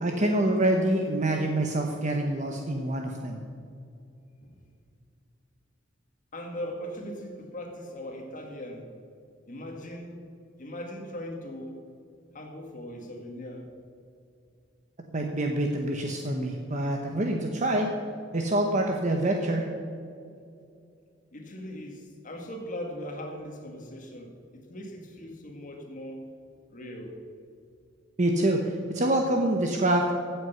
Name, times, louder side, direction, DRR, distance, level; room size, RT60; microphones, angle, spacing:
voice 1, 0.0-3.4 15.1-17.9 18.3-19.7 28.2-30.1, right 1 dB, 40° right, 2 dB, 1.0 m, -26 dB
voice 2, 6.3-8.9 9.5-10.2 10.6-11.8 12.3-13.7 21.3-26.3 26.7-27.2, equal, 45° left, 3 dB, 1.7 m, -39 dB
16.0 x 8.0 x 5.7 m, 2.5 s
head